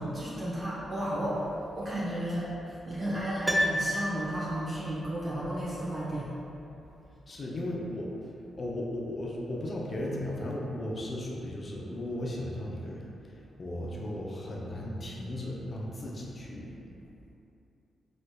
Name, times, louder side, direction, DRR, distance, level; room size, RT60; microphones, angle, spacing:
voice 1, 0.0-1.5 1.8-6.3, right 1 dB, 40° right, -10 dB, 1.0 m, -33 dB
Piano, 3.4-4.7 5.0-5.1, equal, 15° right, 0.4 m, -29 dB
voice 2, 7.3-8.3 8.5-16.8, left 1 dB, 45° left, -3 dB, 0.6 m, -36 dB
3.2 x 3.0 x 2.3 m, 2.7 s
supercardioid pair, 55°, 0 cm